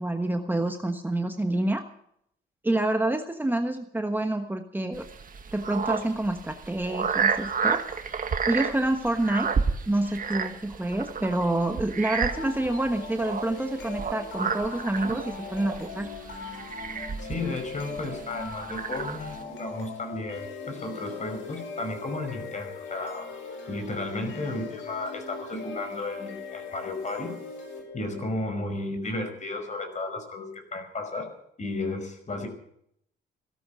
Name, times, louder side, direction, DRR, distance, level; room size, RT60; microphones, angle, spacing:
voice 1, 0.0-1.8 2.6-5.1 5.5-7.9 8.5-9.5 9.9-16.1, right 1 dB, 10° right, 6 dB, 1.3 m, -27 dB
sound 1, 4.9-19.4, right 6 dB, 45° right, 1.8 m, -31 dB
sound 2, 12.3-28.3, left 4 dB, 75° left, 5.2 m, -40 dB
voice 2, 17.2-23.3 23.7-27.4 27.9-31.3 31.6-32.5, left 2 dB, 35° left, 6 dB, 5.4 m, -33 dB
17.0 x 13.0 x 6.3 m, 0.71 s
cardioid pair, 90°, 20 cm